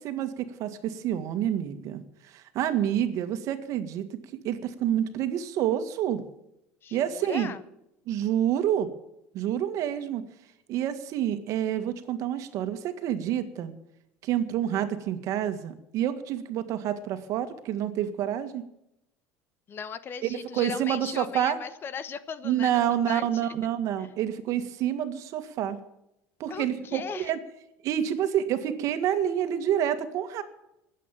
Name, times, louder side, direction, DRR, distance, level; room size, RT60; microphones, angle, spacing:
voice 1, 0.0-4.1 4.4-6.2 6.9-7.5 8.1-8.9 9.3-10.2 10.7-13.7 14.2-18.6 20.2-21.6 22.4-25.8 26.4-27.4 27.8-30.4, right 10 dB, 60° right, 10 dB, 1.8 m, -28 dB
voice 2, 6.8-7.6 19.7-22.7 23.1-23.5 24.0-24.1 26.5-27.3, left 7 dB, 35° left, 15 dB, 1.0 m, -38 dB
20.5 x 8.5 x 7.4 m, 0.84 s
supercardioid pair, 120°, 6 cm